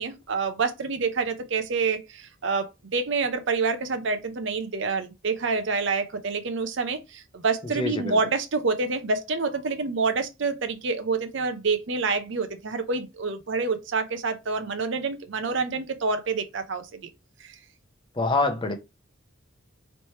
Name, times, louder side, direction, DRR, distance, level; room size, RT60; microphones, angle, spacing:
voice 1, 0.0-17.0 17.4-17.6, right 4 dB, 65° right, 0.6 m, -27 dB
voice 2, 7.8-8.2 18.2-18.7, left 3 dB, 25° left, 0.7 m, -25 dB
3.2 x 3.1 x 4.2 m
head